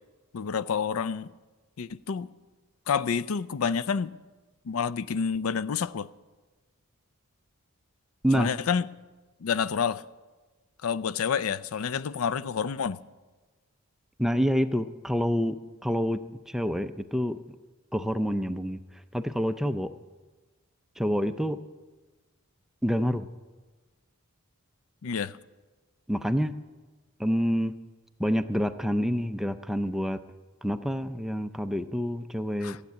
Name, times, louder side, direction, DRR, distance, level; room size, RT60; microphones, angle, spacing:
voice 1, 0.3-1.3 1.8-2.3 2.9-4.1 4.6-6.1 8.3-8.8 9.4-10.0 10.8-13.0 25.0-25.4 32.6-32.8, left 6 dB, 75° left, 0.4 m, -28 dB
voice 2, 14.2-16.2 16.5-17.4 17.9-18.8 19.1-19.9 21.0-21.6 22.8-23.3 26.1-26.5 27.2-27.7 28.2-30.2 30.6-32.8, equal, ahead, 0.4 m, -27 dB
14.5 x 8.2 x 9.4 m
head